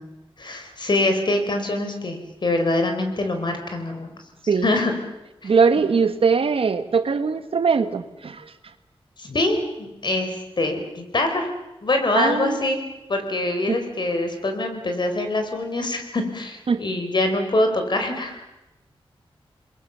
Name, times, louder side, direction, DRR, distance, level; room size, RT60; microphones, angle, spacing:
voice 1, 0.4-4.1 4.6-4.9 9.2-11.5 11.8-12.8 13.1-18.4, left 2 dB, 50° left, 5 dB, 4.3 m, -24 dB
voice 2, 5.4-8.5 12.1-12.6 13.7-13.8 16.7-16.8, right 5 dB, 70° right, 10 dB, 1.5 m, -21 dB
29.5 x 21.5 x 6.9 m, 0.99 s
wide cardioid pair, 105°, 10 cm